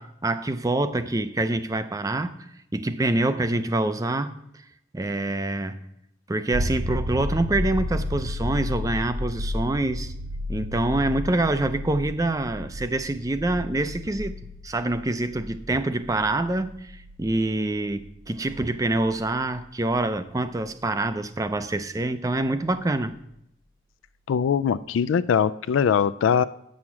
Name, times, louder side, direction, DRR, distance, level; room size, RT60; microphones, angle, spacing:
voice 1, 0.0-2.4 2.7-4.3 4.9-5.8 6.3-10.1 10.5-23.1, right 2 dB, 20° right, 12 dB, 0.4 m, -26 dB
sound 1, 6.5-20.0 22.7-22.8, left 1 dB, 65° right, 0.8 m, -33 dB
voice 2, 24.3-26.4, left 7 dB, 90° left, 15 dB, 0.3 m, -21 dB
8.7 x 6.3 x 7.2 m, 0.78 s
head